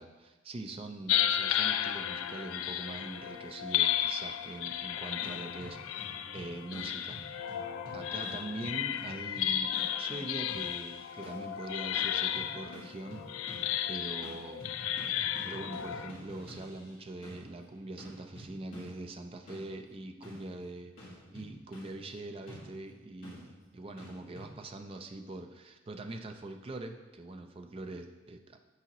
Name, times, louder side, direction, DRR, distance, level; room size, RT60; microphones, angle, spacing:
voice 1, 0.0-7.2 7.9-13.6 13.9-14.7 15.4-28.6, right 2 dB, 30° right, 5 dB, 0.4 m, -43 dB
sound 1, 1.1-16.1, left 10 dB, 85° left, 0.3 m, -33 dB
sound 2, 5.2-11.6 12.0-13.9 14.2-24.5, equal, 45° left, 1.7 m, -50 dB
8.3 x 4.8 x 3.0 m, 1.2 s
head